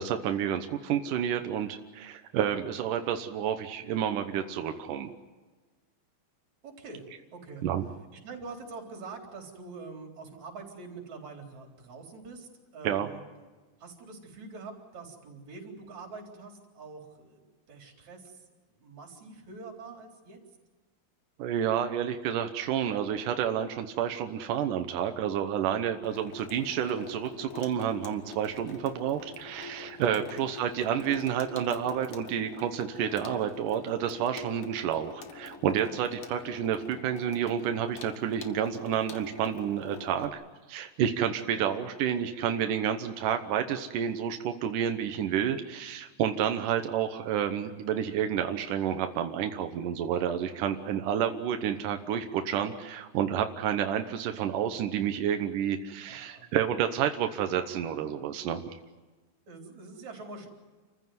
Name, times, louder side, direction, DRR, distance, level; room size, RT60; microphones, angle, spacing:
voice 1, 0.0-5.1 7.6-7.8 12.8-13.1 21.4-40.4 40.7-58.6, right 9 dB, 75° right, 6 dB, 2.0 m, -30 dB
voice 2, 6.6-7.1 7.3-7.6 8.1-13.2 13.8-18.4 18.7-20.4 30.1-30.3 41.5-41.8 56.0-56.5 59.5-60.5, right 4 dB, 40° right, 2 dB, 4.9 m, -45 dB
Water tap faucet / Sink (filling or washing), 26.0-40.3, left 4 dB, 90° left, 1.2 m, -45 dB
29.0 x 15.0 x 9.5 m, 1.3 s
omnidirectional pair, 5.1 m